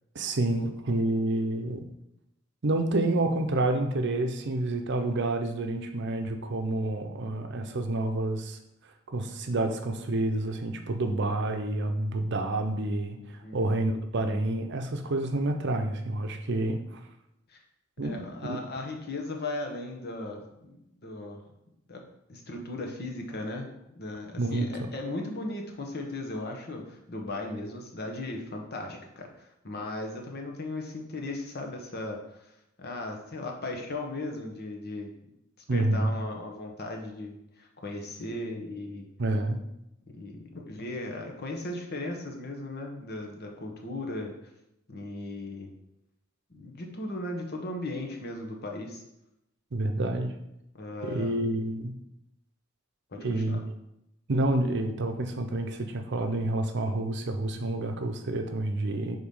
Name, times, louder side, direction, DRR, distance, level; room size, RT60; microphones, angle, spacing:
voice 1, 0.1-1.9 2.6-8.6 9.1-17.0 18.0-18.6 24.4-24.9 35.7-36.1 39.2-39.6 49.7-50.4 51.0-51.9 53.2-53.8 54.3-59.2, right 2 dB, 60° right, 5 dB, 0.7 m, -29 dB
voice 2, 13.4-13.8 17.5-17.6 18.0-21.4 21.9-22.0 22.3-32.4 32.8-35.1 35.7-39.1 40.1-44.4 44.9-45.7 46.5-49.0 50.7-51.4 53.1-53.6, left 2 dB, 50° left, 2 dB, 1.1 m, -37 dB
5.0 x 3.9 x 5.4 m, 0.83 s
head